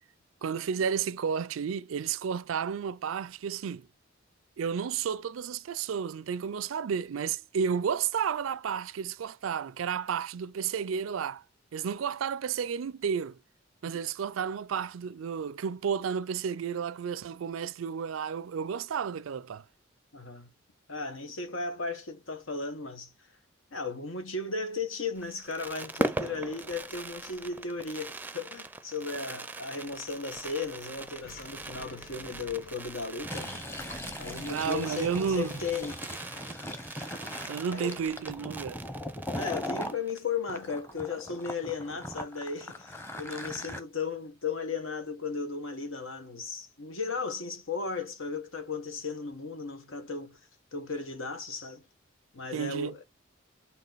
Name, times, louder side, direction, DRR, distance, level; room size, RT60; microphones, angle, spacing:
voice 1, 0.4-3.9 4.6-11.4 11.7-13.4 13.8-19.6 34.5-35.6 37.5-38.8 52.5-52.9, right 7 dB, 85° right, 0.4 m, -32 dB
voice 2, 20.1-20.5 20.9-23.1 23.7-33.6 34.2-36.0 37.7-38.0 39.4-50.4 50.7-51.8 52.3-53.0, left 4 dB, 85° left, 1.4 m, -35 dB
Fireworks, 25.2-40.3 40.6-40.7 40.9-41.2, right 2 dB, 10° right, 0.5 m, -41 dB
Engine, 30.0-35.9, left 1 dB, 45° left, 1.8 m, -53 dB
Fill (with liquid), 33.2-40.0 40.5-43.8, left 1 dB, 10° left, 0.9 m, -39 dB
5.7 x 4.1 x 4.0 m
head